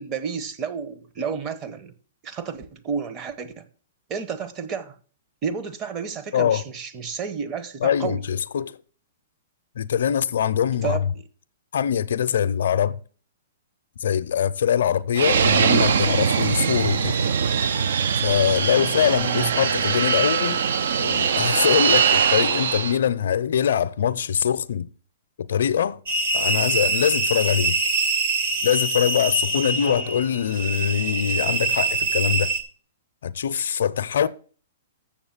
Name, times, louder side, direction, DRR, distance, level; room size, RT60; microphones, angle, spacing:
voice 1, 0.0-1.9 2.2-3.6 4.1-5.0 5.4-8.2 10.8-11.1 18.8-19.5 29.5-30.2, right 6 dB, 30° right, 0.9 m, -31 dB
voice 2, 6.3-6.6 7.8-8.8 9.8-11.0 11.7-13.0 14.0-17.2 18.2-20.6 21.0-24.9 25.5-26.0 26.3-27.8 28.6-32.5 33.2-34.3, left 8 dB, 70° left, 0.5 m, -23 dB
Fixed-wing aircraft airplane, 15.2-23.0, right 7 dB, 75° right, 0.5 m, -21 dB
sound 1, 26.1-32.6, right 3 dB, 50° right, 1.8 m, -24 dB
7.1 x 7.0 x 7.2 m
hypercardioid pair, 145°, 0 cm